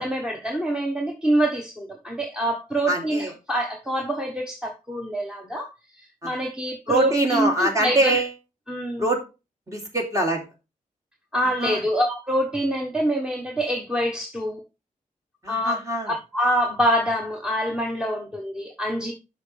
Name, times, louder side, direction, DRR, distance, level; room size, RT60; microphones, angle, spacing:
voice 1, 0.0-5.7 6.0-8.2 8.7-9.1 11.3-14.6 15.5-15.8 16.1-19.1, equal, 5° right, 1.1 m, -25 dB
voice 2, 2.9-3.3 6.2-6.3 6.9-8.3 9.0-9.2 9.7-10.4 11.6-11.8 15.4-16.1, right 2 dB, 25° right, 2.7 m, -23 dB
12.0 x 4.6 x 3.3 m
wide cardioid pair, 135°, 14 cm